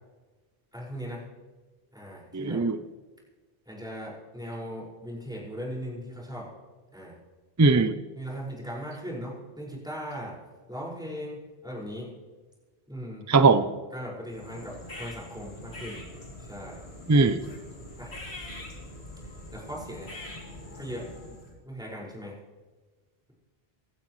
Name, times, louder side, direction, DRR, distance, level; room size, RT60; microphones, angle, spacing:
voice 1, 0.7-1.2 1.9-2.6 3.7-6.5 6.9-7.2 8.1-10.4 10.7-12.1 12.9-13.2 13.9-16.0 16.4-16.8 18.0-18.2 19.5-20.1 20.7-21.1 21.7-22.4, equal, 5° right, -5 dB, 5.6 m, -38 dB
voice 2, 2.3-2.8 7.6-8.0 13.3-13.7 17.1-17.4, right 3 dB, 20° right, 11 dB, 0.5 m, -20 dB
sound 1, 14.3-21.6, left 1 dB, 80° left, 3.4 m, -43 dB
26.0 x 12.5 x 3.2 m, 1.3 s
omnidirectional pair, 1.1 m